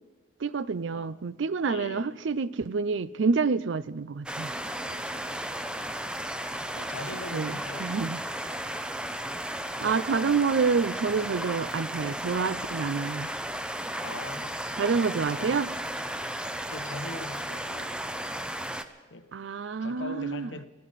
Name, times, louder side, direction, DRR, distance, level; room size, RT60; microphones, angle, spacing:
voice 1, 0.4-4.5 7.3-8.2 9.8-13.3 14.8-15.7 19.3-20.5, right 5 dB, 75° right, 0.5 m, -28 dB
voice 2, 1.6-2.2 4.8-6.0 6.7-8.0 14.0-15.7 16.7-18.1 19.1-19.3 19.8-20.6, left 2 dB, 75° left, 1.0 m, -42 dB
sound 1, 4.3-18.8, right 1 dB, 5° right, 0.6 m, -34 dB
23.0 x 15.0 x 4.1 m
head